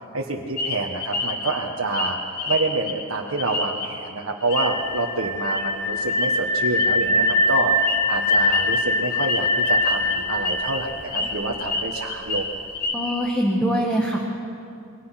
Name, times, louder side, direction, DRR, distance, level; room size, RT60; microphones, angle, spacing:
voice 1, 0.1-2.2 2.5-12.5, right 3 dB, 70° right, -1 dB, 1.5 m, -27 dB
sound 1, 0.6-4.1 4.4-5.0 5.4-5.7 5.9-6.3 6.7-13.3, left 3 dB, 45° left, 3.2 m, -29 dB
sound 2, 4.5-11.4, left 1 dB, 75° left, 4.3 m, -22 dB
voice 2, 12.9-14.2, equal, 5° left, -1 dB, 2.0 m, -23 dB
29.0 x 23.5 x 5.9 m, 2.6 s
head